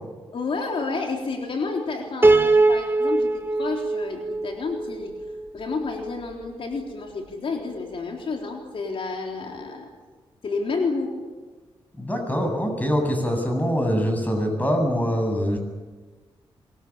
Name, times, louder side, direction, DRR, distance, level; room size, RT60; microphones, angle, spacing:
voice 1, 0.3-5.1 5.5-9.9 10.4-11.1, left 4 dB, 65° left, 2 dB, 3.7 m, -30 dB
Piano, 2.2-5.5, right 2 dB, 20° right, 1.2 m, -21 dB
voice 2, 12.0-15.6, equal, 15° left, 4 dB, 7.6 m, -24 dB
24.5 x 22.0 x 8.7 m, 1.3 s
cardioid pair, 65°, 10 cm